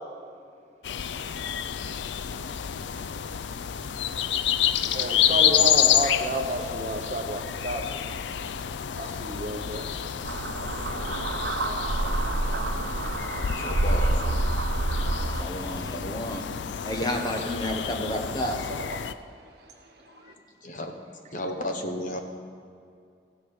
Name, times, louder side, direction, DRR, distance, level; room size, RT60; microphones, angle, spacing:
sound 1, 0.8-19.1, left 10 dB, 80° left, 0.4 m, -29 dB
voice 1, 4.9-8.0 9.0-9.9 17.7-17.8, right 2 dB, 40° right, 4 dB, 1.0 m, -30 dB
sound 2, 10.2-15.4, right 2 dB, 80° right, 0.8 m, -27 dB
voice 2, 13.5-14.3 20.6-20.9 21.3-22.2, left 1 dB, 45° left, 4 dB, 1.1 m, -33 dB
voice 3, 15.3-16.4 16.8-18.6, left 1 dB, 20° left, 2 dB, 1.1 m, -31 dB
voice 4, 18.4-20.3, right 2 dB, 60° right, 3 dB, 1.6 m, -42 dB
14.5 x 7.7 x 6.6 m, 2.4 s
head